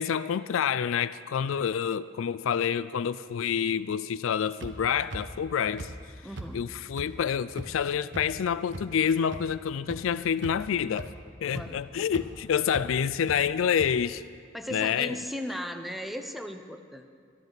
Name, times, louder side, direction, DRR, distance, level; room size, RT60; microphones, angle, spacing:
voice 1, 0.0-5.9 6.5-11.1 11.4-14.2 14.7-15.1, left 8 dB, 75° left, 15 dB, 0.4 m, -28 dB
sound 1, 4.6-4.7 5.1-5.2 5.8-5.9 6.4-6.5 7.0-7.1 7.6-7.7 8.1-8.2 8.7-8.8 9.3-9.4 9.9-10.0 10.4-10.7 11.0-11.1 11.5-11.7 12.1-12.2 12.7-12.8 13.3-13.4 13.8-13.9, right 2 dB, 60° right, 1.2 m, -37 dB
voice 2, 6.2-6.6 11.5-11.8 14.5-17.1, equal, ahead, 6 dB, 0.8 m, -37 dB
22.5 x 13.0 x 4.0 m, 2.1 s
head